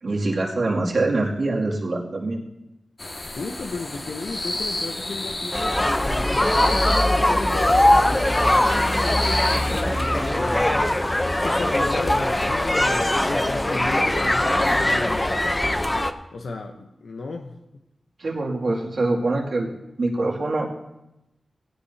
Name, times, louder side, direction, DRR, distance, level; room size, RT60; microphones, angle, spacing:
voice 1, 0.0-2.4 18.2-19.7 20.0-20.7, right 2 dB, 60° right, -3 dB, 2.5 m, -24 dB
sound 1, 3.0-9.8, left 1 dB, 35° left, 1.8 m, -31 dB
voice 2, 3.4-15.4 16.3-17.6, left 3 dB, 80° left, 3 dB, 0.9 m, -34 dB
sound 2, 5.5-16.1, left 1 dB, 15° left, 0.7 m, -21 dB
18.0 x 16.5 x 2.8 m, 0.92 s
wide cardioid pair, 120°, 0 cm